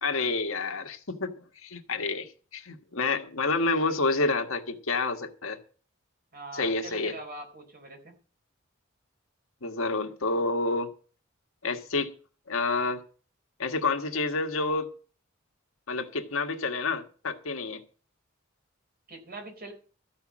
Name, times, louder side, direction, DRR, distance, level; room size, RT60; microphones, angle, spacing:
voice 1, 0.0-1.3 1.6-5.6 6.5-7.1 9.6-10.9 11.6-12.1 12.5-13.0 13.6-14.9 15.9-17.8, left 3 dB, 90° left, 1.5 m, -29 dB
voice 2, 6.3-8.1 19.1-19.7, right 2 dB, 50° right, 4.2 m, -42 dB
14.0 x 5.8 x 8.6 m
head